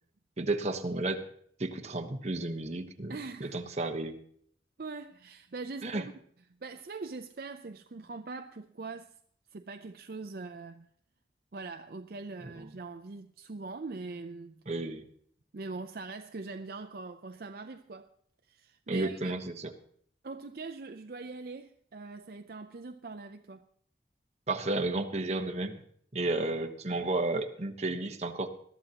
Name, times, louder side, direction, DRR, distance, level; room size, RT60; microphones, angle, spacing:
voice 1, 0.4-1.2 1.6-4.2 5.8-6.0 14.7-15.0 18.9-19.7 24.5-25.8 26.1-28.5, right 2 dB, 40° right, 1.1 m, -32 dB
voice 2, 3.1-3.6 4.8-6.1 6.6-9.2 9.5-10.9 11.5-14.6 15.5-18.1 18.4-19.4 20.2-23.6, right 3 dB, 55° right, 0.5 m, -42 dB
21.0 x 13.0 x 2.9 m
head